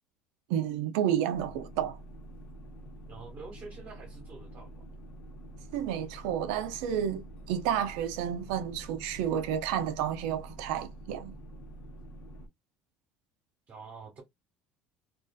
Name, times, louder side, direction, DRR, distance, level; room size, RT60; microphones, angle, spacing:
voice 1, 0.5-2.0 5.7-11.3, right 9 dB, 85° right, 0.4 m, -31 dB
sound 1, 1.3-12.5, right 1 dB, 75° left, 0.9 m, -47 dB
voice 2, 3.1-4.8 13.7-14.2, right 4 dB, 40° right, 1.0 m, -47 dB
2.5 x 2.4 x 2.2 m
cardioid pair, 115°, 4 cm